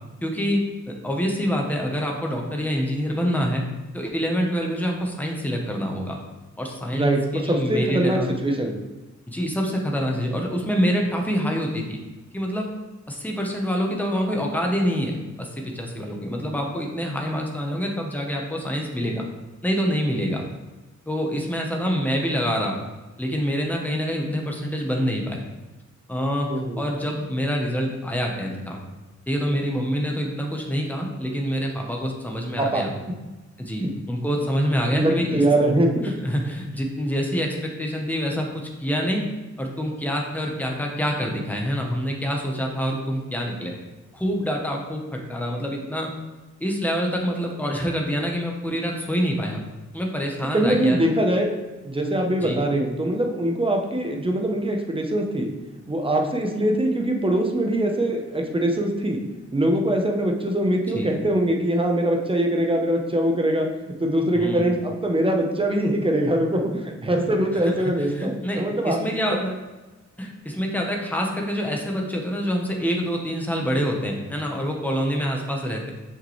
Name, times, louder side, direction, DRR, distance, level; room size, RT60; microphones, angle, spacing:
voice 1, 0.2-3.6 3.9-6.2 6.6-8.3 9.3-12.0 12.3-12.7 13.1-19.3 19.6-20.4 21.1-22.8 23.2-25.4 26.1-26.5 26.8-28.8 29.3-32.9 33.6-35.4 36.0-39.2 39.6-43.8 44.1-46.1 46.6-49.6 49.9-51.0 52.4-52.6 60.9-61.1 64.3-64.7 67.5-69.6 70.2-75.9, equal, 5° left, 0 dB, 1.0 m, -26 dB
voice 2, 7.7-8.8 26.5-26.8 32.6-32.8 33.8-33.9 34.9-36.1 50.5-51.5 51.8-55.5 55.9-59.2 59.5-69.0, right 1 dB, 20° right, 2 dB, 0.9 m, -22 dB
6.6 x 6.3 x 3.3 m, 1.2 s
wide cardioid pair, 155°, 30 cm